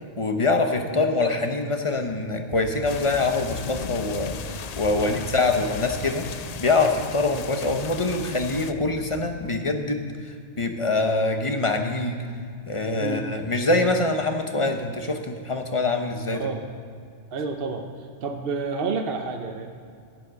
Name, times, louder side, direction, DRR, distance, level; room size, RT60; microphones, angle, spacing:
voice 1, 0.2-6.3 6.6-10.1 10.6-12.2 12.7-16.5, left 3 dB, 30° left, 5 dB, 0.9 m, -24 dB
Run, 2.5-9.5, equal, 50° left, 2.3 m, -41 dB
sound 1, 2.9-8.7, left 7 dB, 80° left, 0.3 m, -37 dB
voice 2, 16.3-16.7 17.3-17.9 18.2-19.7, right 4 dB, 50° right, 4 dB, 1.0 m, -29 dB
11.5 x 9.2 x 6.3 m, 2.3 s
omnidirectional pair, 1.3 m